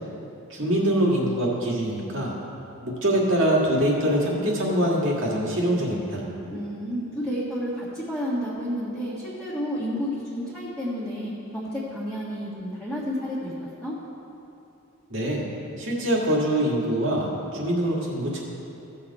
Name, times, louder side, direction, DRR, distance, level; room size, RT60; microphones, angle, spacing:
voice 1, 0.5-2.3 2.8-6.2 15.1-15.4 15.8-18.4, right 1 dB, 60° right, -3 dB, 2.0 m, -24 dB
voice 2, 6.5-13.5 13.8-13.9, equal, 5° left, -12 dB, 1.5 m, -31 dB
15.5 x 6.7 x 4.2 m, 2.8 s
head